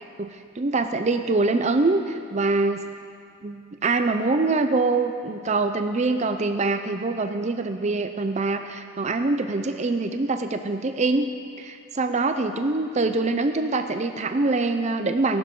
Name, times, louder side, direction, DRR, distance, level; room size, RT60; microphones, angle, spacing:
voice 1, 0.2-2.8 3.4-11.3 11.6-15.4, right 3 dB, 35° right, 8 dB, 0.5 m, -24 dB
17.5 x 11.5 x 3.8 m, 2.3 s
head